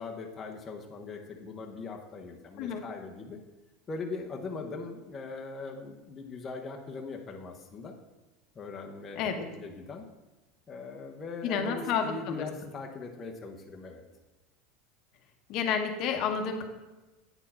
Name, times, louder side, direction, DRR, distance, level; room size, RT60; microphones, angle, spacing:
voice 1, 0.0-3.4 3.9-7.9 8.5-10.0 10.7-14.0, left 4 dB, 20° left, 0 dB, 0.8 m, -40 dB
voice 2, 11.4-12.5 15.5-16.6, left 6 dB, 50° left, 5 dB, 1.0 m, -30 dB
8.9 x 4.4 x 5.7 m, 1.1 s
supercardioid pair, 140°, 0 cm